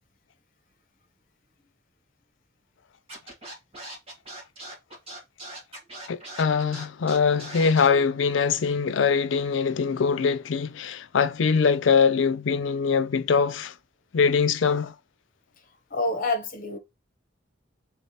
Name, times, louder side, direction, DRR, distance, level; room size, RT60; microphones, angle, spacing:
Scratching (performance technique), 3.1-7.9, right 1 dB, 30° right, 2.0 m, -40 dB
voice 1, 6.1-13.7 14.1-14.9, left 5 dB, 85° left, 0.5 m, -23 dB
voice 2, 15.9-16.8, left 2 dB, 50° left, 1.1 m, -27 dB
3.5 x 3.4 x 4.1 m
head